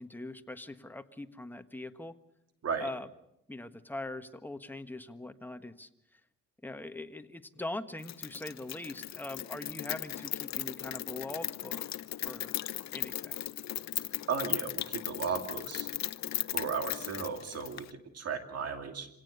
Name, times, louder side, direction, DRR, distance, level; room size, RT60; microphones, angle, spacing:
voice 1, 0.0-2.2 2.8-3.1 3.5-5.9 6.6-11.8 12.2-12.6 12.9-13.4, left 2 dB, 5° left, 8 dB, 1.4 m, -42 dB
Rain, 8.0-17.9, left 12 dB, 60° left, 0.8 m, -37 dB
voice 2, 14.3-15.9 16.5-19.1, right 6 dB, 55° right, 6 dB, 2.7 m, -35 dB
26.0 x 17.5 x 6.8 m, 0.80 s
cardioid pair, 90°, 30 cm